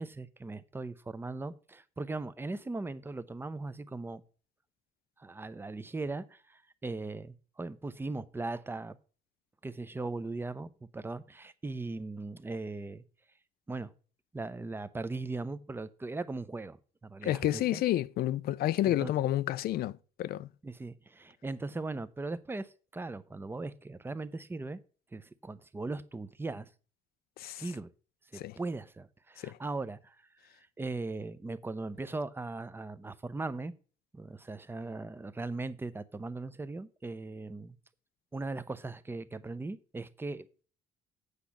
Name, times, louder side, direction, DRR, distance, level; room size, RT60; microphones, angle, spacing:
voice 1, 0.0-4.2 5.2-9.0 9.6-13.0 13.7-13.9 14.3-16.8 17.0-17.8 18.8-19.1 20.6-24.8 25.1-26.7 27.4-27.9 28.3-30.2 30.5-33.7 34.1-37.8 38.3-40.6, right 3 dB, 15° right, 0.6 m, -39 dB
voice 2, 17.2-20.5 27.4-27.6 28.3-28.6 29.4-29.6, left 14 dB, 65° left, 0.5 m, -30 dB
8.2 x 5.0 x 7.2 m
cardioid pair, 110°, 17 cm